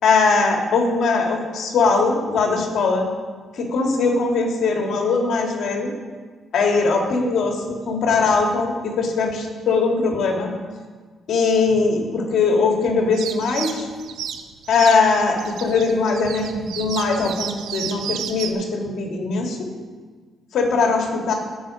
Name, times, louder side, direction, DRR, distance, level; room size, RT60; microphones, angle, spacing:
voice 1, 0.0-3.1 3.5-5.9 6.5-10.5 11.3-13.9 14.7-19.7 20.5-21.3, left 4 dB, 70° left, 1 dB, 2.4 m, -20 dB
sound 1, 13.1-18.5, right 9 dB, 85° right, 0.9 m, -32 dB
18.5 x 6.2 x 5.0 m, 1.5 s
cardioid pair, 90°, 0 cm